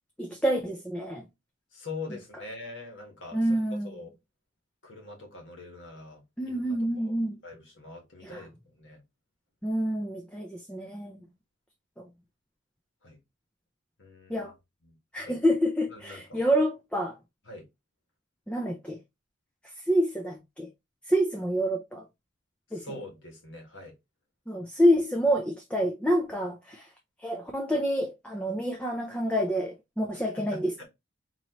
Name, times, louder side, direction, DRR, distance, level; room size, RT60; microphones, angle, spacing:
voice 1, 0.2-1.2 3.3-3.9 6.4-7.4 8.2-8.4 9.6-11.2 12.0-12.1 14.3-14.5 15.1-17.2 18.5-19.0 19.9-20.7 21.1-22.0 22.7-22.8 24.5-26.9 27.2-30.8, equal, 5° left, 0.5 m, -27 dB
voice 2, 1.7-3.4 3.8-4.1 4.8-7.1 7.4-9.0 13.0-13.2 14.0-14.5 14.8-15.3 15.9-16.4 17.4-17.7 22.7-23.9 30.3-30.9, left 3 dB, 65° left, 1.7 m, -43 dB
4.2 x 3.0 x 3.0 m
head